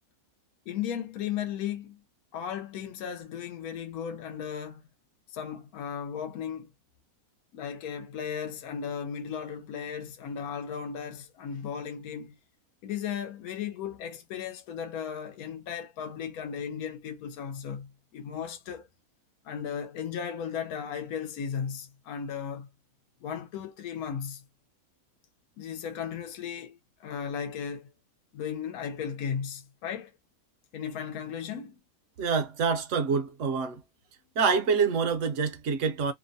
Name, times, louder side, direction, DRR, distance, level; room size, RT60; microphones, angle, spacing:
voice 1, 0.7-2.0 2.3-4.8 5.3-6.7 7.5-12.4 12.8-18.9 19.4-22.7 23.2-24.4 25.6-27.9 28.3-30.1 30.7-31.8, left 7 dB, 75° left, 1.1 m, -36 dB
voice 2, 32.2-33.8 34.4-36.1, right 5 dB, 60° right, 0.9 m, -26 dB
3.0 x 2.1 x 2.5 m
omnidirectional pair, 1.6 m